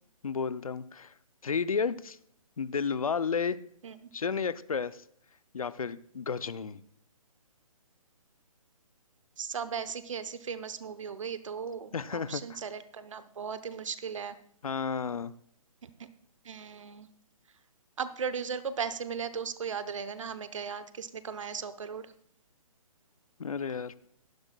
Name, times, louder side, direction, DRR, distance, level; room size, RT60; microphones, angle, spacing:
voice 1, 0.2-1.1 1.4-2.2 2.6-3.6 4.1-5.0 5.5-6.8 11.9-12.6 14.6-15.3 23.4-23.9, left 5 dB, 70° left, 16 dB, 0.6 m, -32 dB
voice 2, 9.4-14.4 15.8-15.9 16.4-17.1 18.0-22.1, right 6 dB, 55° right, 13 dB, 0.8 m, -37 dB
16.0 x 11.5 x 2.3 m, 0.66 s
figure-of-eight pair, 135°, 19 cm